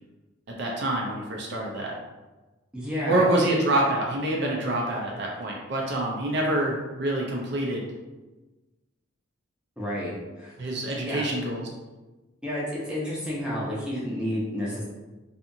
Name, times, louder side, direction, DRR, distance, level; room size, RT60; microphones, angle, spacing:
voice 1, 0.6-1.9 3.1-7.9 10.6-11.7, right 1 dB, 55° right, -1 dB, 0.4 m, -26 dB
voice 2, 2.7-3.2 9.8-10.5 11.0-11.2 12.4-14.8, left 1 dB, 5° right, -7 dB, 0.6 m, -30 dB
2.7 x 2.4 x 2.6 m, 1.2 s
head